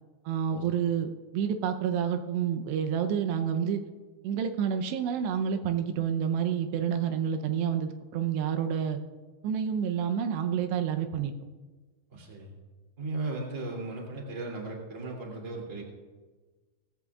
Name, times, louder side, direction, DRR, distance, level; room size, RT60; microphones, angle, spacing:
voice 1, 0.3-3.8 4.2-9.0 9.4-11.3, right 8 dB, 85° right, 7 dB, 2.9 m, -29 dB
voice 2, 12.1-12.5 13.0-15.8, right 2 dB, 20° right, -1 dB, 2.5 m, -36 dB
19.0 x 15.5 x 2.4 m, 1.3 s
omnidirectional pair, 4.8 m